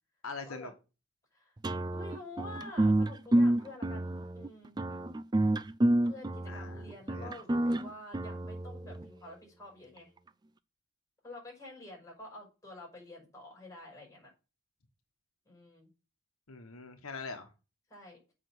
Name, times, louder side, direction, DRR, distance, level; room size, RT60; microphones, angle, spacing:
voice 1, 0.2-0.7 6.5-6.9 7.1-7.4 16.5-17.5, left 4 dB, 85° left, 1.3 m, -43 dB
sound 1, 1.6-9.0, right 1 dB, 20° right, 0.4 m, -29 dB
voice 2, 1.9-4.1 4.3-4.8 6.0-10.1 11.2-14.3 15.5-15.9 17.9-18.2, left 2 dB, 15° left, 5.7 m, -48 dB
7.6 x 5.7 x 6.2 m
head